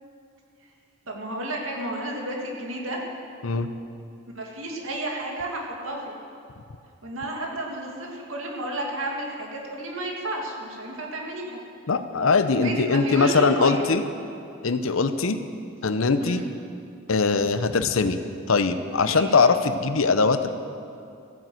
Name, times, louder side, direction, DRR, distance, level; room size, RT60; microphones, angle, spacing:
voice 1, 1.1-3.0 4.4-6.1 7.0-11.6 12.5-13.8 16.2-16.4 19.0-19.3, right 1 dB, 85° right, 0 dB, 2.3 m, -32 dB
voice 2, 11.9-14.0 14.6-15.4 15.8-16.4 17.1-18.2 18.5-20.5, left 4 dB, 90° left, 10 dB, 0.8 m, -21 dB
14.5 x 9.3 x 7.7 m, 2.5 s
head